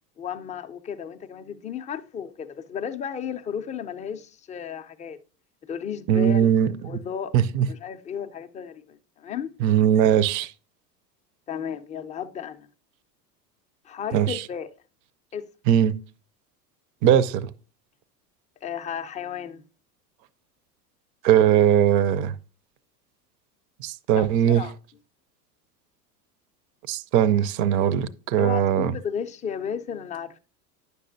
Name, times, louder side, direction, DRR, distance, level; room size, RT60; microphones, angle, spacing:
voice 1, 0.2-5.2 5.6-6.5 6.8-7.3 7.7-9.5 11.5-12.7 13.8-14.7 15.3-15.5 18.6-19.6 24.1-24.7 28.4-30.4, left 7 dB, 15° left, 0.4 m, -34 dB
voice 2, 6.1-6.7 7.3-7.7 9.6-10.5 14.1-14.4 15.7-16.0 17.0-17.5 21.2-22.3 23.8-24.7 26.9-28.9, right 9 dB, 40° right, 0.6 m, -20 dB
9.8 x 6.7 x 2.6 m
hypercardioid pair, 90°, 48 cm